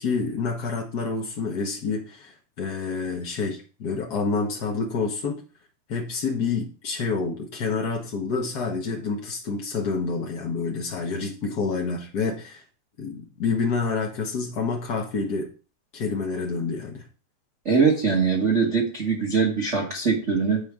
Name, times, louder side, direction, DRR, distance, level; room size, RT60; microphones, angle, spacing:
voice 1, 0.0-5.4 5.9-12.6 13.0-15.5 15.9-17.0, left 4 dB, 55° left, 0 dB, 1.1 m, -28 dB
voice 2, 17.6-20.6, right 5 dB, 65° right, 0 dB, 0.7 m, -22 dB
9.1 x 5.1 x 3.6 m, 0.36 s
omnidirectional pair, 3.4 m